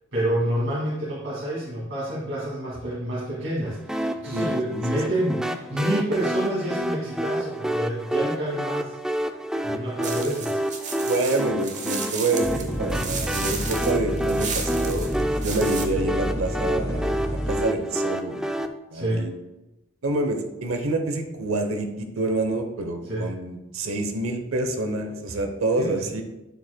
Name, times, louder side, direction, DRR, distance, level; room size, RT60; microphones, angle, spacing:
voice 1, 0.1-9.0 9.6-10.6 18.9-19.2 23.0-23.3 25.8-26.0, right 1 dB, 60° right, -8 dB, 2.3 m, -28 dB
sound 1, 3.9-18.7, right 1 dB, 5° right, 0.3 m, -29 dB
voice 2, 4.3-4.8 11.0-15.1 15.4-18.5 18.9-19.3 20.0-26.2, right 2 dB, 90° right, 5 dB, 0.8 m, -27 dB
sound 2, 10.0-15.8, right 5 dB, 35° right, 1.0 m, -33 dB
sound 3, 12.4-17.6, equal, 15° left, 1.0 m, -30 dB
9.2 x 7.9 x 2.2 m, 0.99 s
head